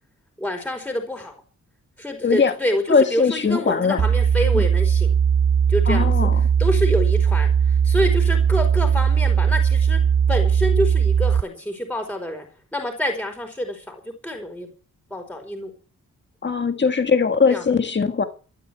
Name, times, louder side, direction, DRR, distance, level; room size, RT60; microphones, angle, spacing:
voice 1, 0.4-1.4 2.0-5.1 5.7-6.3 6.6-7.5 7.8-10.0 10.3-12.5 12.7-14.7 15.1-15.7 17.5-17.6, equal, 5° left, 4.7 m, -27 dB
voice 2, 2.2-2.5 2.9-4.0 4.5-4.6 5.9-6.4 16.4-18.2, left 5 dB, 35° left, 1.9 m, -20 dB
sound 1, 4.0-11.4, right 7 dB, 40° right, 0.7 m, -18 dB
13.0 x 11.5 x 8.1 m
wide cardioid pair, 125°, 31 cm